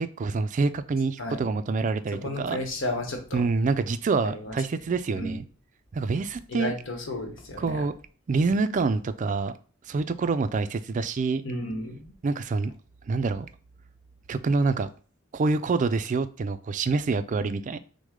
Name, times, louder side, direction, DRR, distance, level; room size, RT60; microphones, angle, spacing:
voice 1, 0.0-2.6 3.3-5.4 5.9-6.7 7.6-7.9 8.3-9.5 9.9-11.4 12.2-12.7 13.1-13.5 14.3-14.9 15.3-17.8, right 4 dB, 40° right, 11 dB, 0.3 m, -26 dB
voice 2, 2.2-3.4 4.2-4.6 5.1-5.4 6.5-7.8 11.4-12.1, left 1 dB, 70° left, 4 dB, 1.1 m, -33 dB
6.2 x 2.1 x 3.6 m, 0.40 s
head